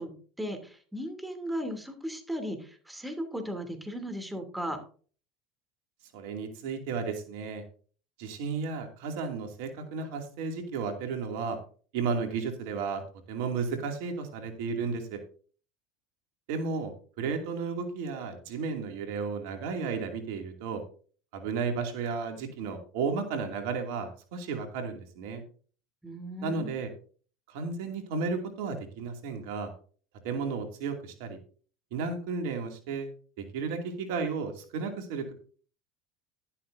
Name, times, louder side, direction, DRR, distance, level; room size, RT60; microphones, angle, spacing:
voice 1, 0.0-4.8 26.0-26.7, equal, 5° right, 5 dB, 2.8 m, -36 dB
voice 2, 6.1-7.6 8.2-11.6 11.9-13.0 13.3-15.2 16.5-20.8 21.3-25.4 26.4-26.9 27.5-29.7 30.2-31.4 31.9-33.1 33.4-35.3, right 5 dB, 70° right, 5 dB, 2.5 m, -33 dB
12.0 x 11.5 x 2.7 m, 0.41 s
hypercardioid pair, 85°, 0 cm